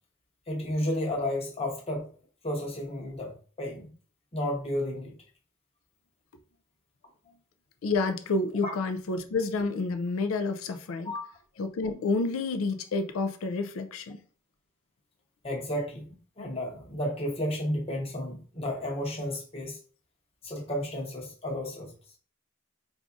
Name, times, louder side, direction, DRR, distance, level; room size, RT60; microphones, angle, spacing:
voice 1, 0.5-2.1 2.4-3.3 3.6-3.9 4.3-5.1 8.6-8.7 11.0-11.4 15.4-16.0 16.4-19.8 20.4-21.9, left 1 dB, 30° left, 0.9 m, -32 dB
voice 2, 7.8-11.1 11.6-14.2, left 3 dB, 80° left, 0.4 m, -29 dB
4.7 x 2.6 x 2.4 m
head